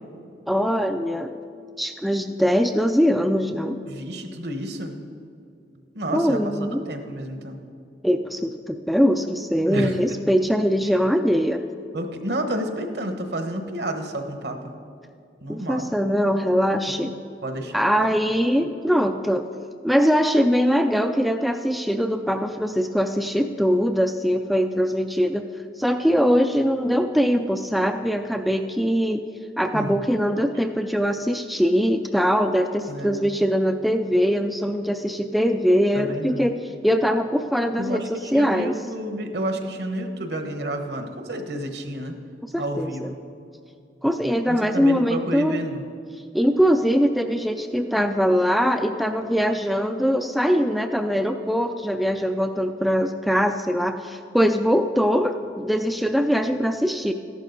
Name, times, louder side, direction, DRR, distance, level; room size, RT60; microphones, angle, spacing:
voice 1, 0.5-1.3 1.8-3.8 6.1-6.8 8.0-11.6 15.5-17.1 17.7-19.5 19.8-25.4 25.8-29.2 29.6-38.7 42.4-43.1 44.0-45.6 46.3-57.1, equal, ahead, 6 dB, 0.3 m, -22 dB
voice 2, 3.9-4.9 5.9-6.4 6.9-7.6 9.7-10.0 11.9-14.6 15.4-15.9 17.4-18.1 29.7-30.0 32.9-33.3 35.9-36.5 37.8-42.1 42.6-43.1 44.5-45.8, right 1 dB, 65° right, 6 dB, 1.1 m, -30 dB
14.0 x 11.0 x 4.0 m, 2.4 s
head